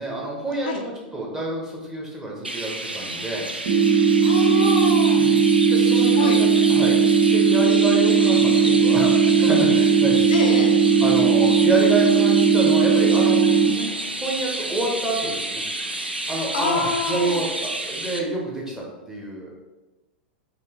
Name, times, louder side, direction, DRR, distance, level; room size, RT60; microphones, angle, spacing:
voice 1, 0.0-3.5 5.2-7.0 7.3-10.3 11.0-13.9 14.2-15.6 16.3-19.5, right 2 dB, 10° right, -3 dB, 1.1 m, -28 dB
Chirp tweet, 2.4-18.2, right 2 dB, 90° right, 0.4 m, -30 dB
sound 1, 3.7-13.7, right 5 dB, 60° right, 0.8 m, -17 dB
voice 2, 4.2-5.2 6.2-6.4 10.3-10.7 16.5-17.4, left 4 dB, 55° left, 1 dB, 0.6 m, -26 dB
4.2 x 3.0 x 2.9 m, 1.1 s
figure-of-eight pair, 95°, 5 cm